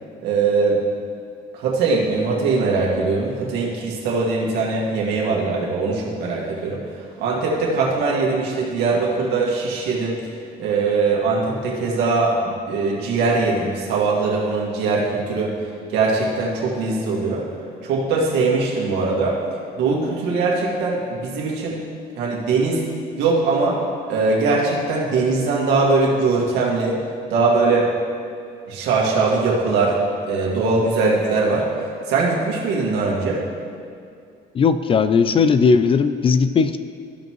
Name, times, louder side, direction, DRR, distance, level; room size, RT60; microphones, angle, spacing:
voice 1, 0.2-0.8 1.5-6.8 7.2-10.2 10.6-15.5 15.9-17.4 17.8-19.4 19.8-21.8 22.2-22.8 23.2-23.8 24.1-27.0 27.3-27.9 28.7-30.0 30.2-31.7 32.1-33.4, right 3 dB, 85° right, -3 dB, 2.0 m, -21 dB
voice 2, 34.5-36.8, left 5 dB, 35° left, 11 dB, 0.3 m, -17 dB
14.5 x 5.3 x 3.1 m, 2.3 s
cardioid pair, 110°, 17 cm